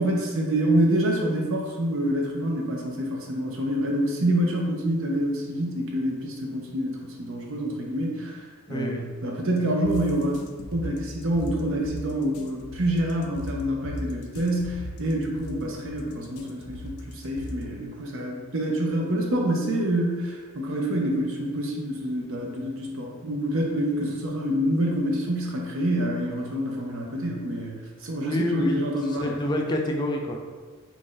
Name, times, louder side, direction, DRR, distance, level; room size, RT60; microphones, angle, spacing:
voice 1, 0.0-8.4 8.7-10.4 10.7-29.3, right 1 dB, 60° right, 0 dB, 0.6 m, -27 dB
voice 2, 8.7-9.1 28.2-30.4, left 1 dB, 20° left, 1 dB, 0.3 m, -28 dB
sound 1, 9.8-17.9, left 1 dB, 85° left, 0.4 m, -37 dB
3.0 x 2.6 x 3.8 m, 1.5 s
head